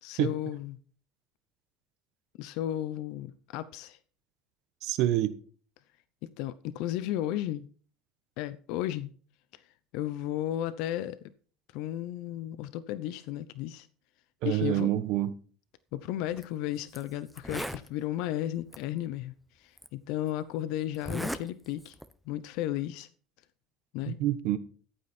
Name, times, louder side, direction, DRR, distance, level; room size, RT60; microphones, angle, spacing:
voice 1, 0.0-0.8 2.4-4.0 6.2-7.7 8.4-9.1 9.9-11.3 11.7-13.9 14.4-14.9 15.9-22.0 22.3-23.1 23.9-24.2, left 13 dB, 75° left, 0.8 m, -34 dB
voice 2, 4.8-5.3 14.4-15.3 24.1-24.6, right 13 dB, 70° right, 1.1 m, -27 dB
Zipper (clothing), 16.3-16.4 16.9-17.0 17.3-17.9 18.7-18.8 19.8-19.9 20.9-21.4 21.8-22.1, equal, 5° right, 1.0 m, -36 dB
14.5 x 8.8 x 4.4 m
supercardioid pair, 90°, 0 cm